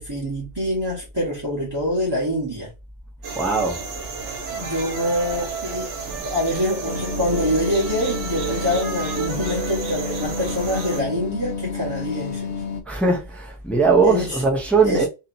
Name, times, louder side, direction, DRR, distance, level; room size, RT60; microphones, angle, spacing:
voice 1, 0.0-2.7 4.5-6.0 6.2-12.5 14.0-14.4 14.8-15.1, left 1 dB, 20° right, 1.0 m, -25 dB
sound 1, 3.2-11.0, right 5 dB, 85° right, 1.1 m, -32 dB
voice 2, 3.3-3.8 6.1-6.2 12.9-15.1, right 4 dB, ahead, 0.6 m, -20 dB
sound 2, 6.8-12.8, left 4 dB, 65° left, 0.8 m, -30 dB
2.8 x 2.7 x 2.5 m
omnidirectional pair, 1.2 m